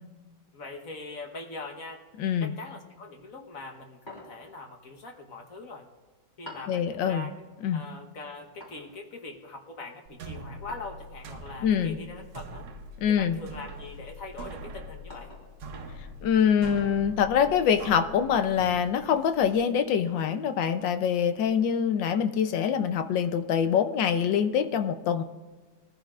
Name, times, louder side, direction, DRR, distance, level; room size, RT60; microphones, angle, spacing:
voice 1, 0.5-2.0 2.4-5.8 6.4-7.5 7.7-12.6 13.1-15.3, left 3 dB, 50° left, 3 dB, 1.5 m, -42 dB
voice 2, 2.2-2.5 6.7-7.2 7.6-7.8 11.6-12.0 13.0-13.4 16.2-25.2, left 8 dB, 85° left, 9 dB, 1.5 m, -25 dB
sound 1, 4.1-4.6 6.5-6.8 8.6-8.9 10.7-11.0 12.5-12.9 13.5-13.7 15.1-15.6, left 1 dB, 25° left, 3.9 m, -46 dB
sound 2, 10.1-19.6, right 1 dB, 70° right, 1.5 m, -43 dB
21.0 x 14.5 x 2.5 m, 1.3 s
omnidirectional pair, 2.0 m